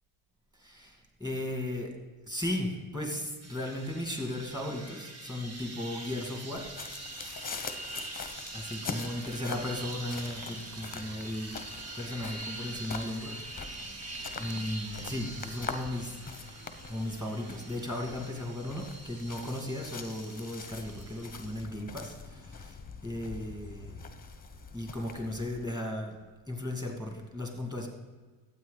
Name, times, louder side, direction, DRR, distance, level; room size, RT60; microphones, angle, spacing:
voice 1, 0.5-1.9 2.3-6.7 8.5-11.6 11.9-16.2 16.9-24.1 24.7-26.2 26.5-27.9, left 1 dB, 10° right, 1 dB, 2.4 m, -36 dB
sound 1, 3.4-21.6, right 2 dB, 30° right, 1.5 m, -44 dB
sound 2, 6.5-25.6, left 5 dB, 20° left, 1.0 m, -44 dB
sound 3, 9.4-17.7, right 3 dB, 65° right, 2.6 m, -55 dB
12.5 x 8.5 x 4.1 m, 1.4 s
cardioid pair, 100°, 50 cm